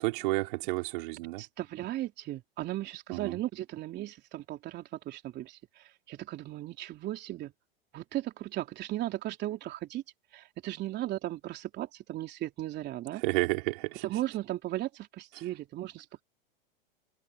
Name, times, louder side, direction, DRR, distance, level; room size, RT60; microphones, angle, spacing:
voice 1, 0.0-1.4 3.1-3.4 13.2-14.1, right 23 dB, 60° right, 3.7 m, -31 dB
voice 2, 1.4-7.5 7.9-10.0 10.3-13.2 14.0-16.2, right 14 dB, 35° right, 3.2 m, -36 dB
hypercardioid pair, 115°, 29 cm